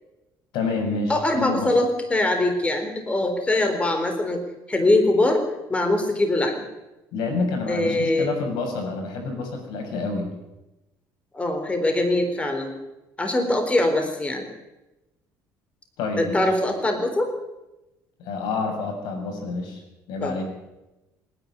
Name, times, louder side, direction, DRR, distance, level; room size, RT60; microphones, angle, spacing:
voice 1, 0.5-1.8 7.1-10.3 16.0-16.5 18.2-19.8 20.1-20.4, left 3 dB, 75° left, 4 dB, 6.8 m, -28 dB
voice 2, 1.1-4.4 4.7-5.4 5.7-6.7 7.7-8.3 11.3-12.7 13.2-14.5 16.2-17.3 20.2-20.3, left 2 dB, 15° left, 5 dB, 4.0 m, -22 dB
26.0 x 11.0 x 10.0 m, 0.98 s
cardioid pair, 110°, 8 cm